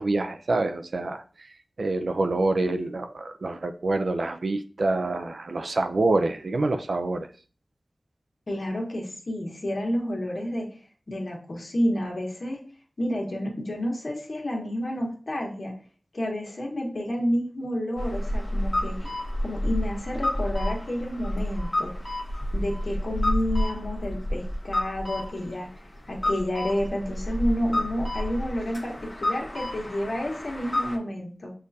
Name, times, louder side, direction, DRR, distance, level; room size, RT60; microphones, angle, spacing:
voice 1, 0.0-1.5 1.8-7.3, right 2 dB, 80° right, 7 dB, 0.4 m, -26 dB
voice 2, 8.5-10.7 11.1-12.6 13.0-15.7 16.1-19.1 19.4-21.9 22.5-25.7 26.1-31.5, equal, 65° left, -1 dB, 1.3 m, -30 dB
sound 1, 18.0-31.0, left 1 dB, 35° left, 1.0 m, -30 dB
6.4 x 2.5 x 2.7 m, 0.38 s
wide cardioid pair, 55°, 0 cm